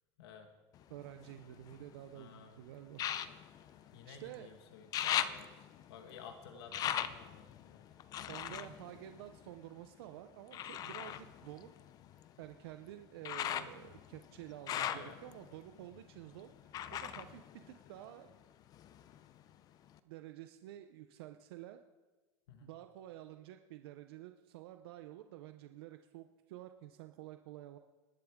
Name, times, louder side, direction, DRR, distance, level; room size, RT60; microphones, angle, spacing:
voice 1, 0.2-0.5 2.1-2.5 3.9-7.9 8.2-8.3 14.7-15.2 22.5-22.7, left 7 dB, 90° left, 4 dB, 1.6 m, -53 dB
sound 1, 0.8-2.1 2.9-4.4 4.7-9.9 10.5-18.4 18.7-19.5 20.0-20.1, left 10 dB, 30° left, 0.5 m, -40 dB
voice 2, 0.9-3.0 3.7-4.6 6.5-6.9 8.3-11.7 12.4-17.4 17.7-18.3 20.0-21.8 22.6-27.8, right 13 dB, 80° right, 8 dB, 0.7 m, -50 dB
20.0 x 11.5 x 3.7 m, 1.3 s
supercardioid pair, 160°, 13 cm